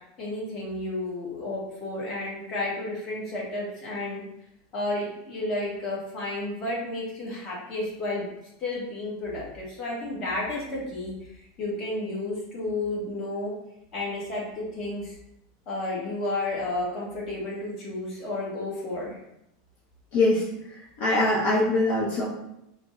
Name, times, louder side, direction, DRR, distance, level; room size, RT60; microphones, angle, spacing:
voice 1, 0.2-4.2 4.7-8.3 8.6-13.5 13.9-15.2 15.7-19.2, left 2 dB, 30° left, -5 dB, 1.1 m, -32 dB
voice 2, 20.1-20.5 20.8-22.2, left 2 dB, 55° left, -6 dB, 0.7 m, -23 dB
3.4 x 2.0 x 3.6 m, 0.81 s
supercardioid pair, 160°, 0 cm